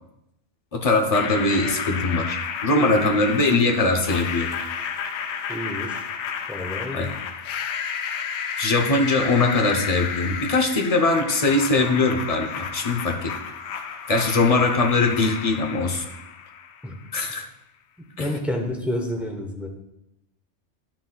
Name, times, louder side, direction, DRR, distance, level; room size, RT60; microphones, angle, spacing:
voice 1, 0.7-4.5 6.9-7.1 8.6-13.3 14.1-16.0 17.1-17.4 18.2-18.3, left 3 dB, 35° left, 2 dB, 0.8 m, -21 dB
sound 1, 1.1-17.1, left 7 dB, 75° left, 0.9 m, -32 dB
voice 2, 2.8-3.2 5.5-6.1 6.5-7.1 16.8-17.0 18.2-19.7, equal, ahead, 1 dB, 0.8 m, -29 dB
11.5 x 6.0 x 2.3 m, 0.86 s
omnidirectional pair, 1.2 m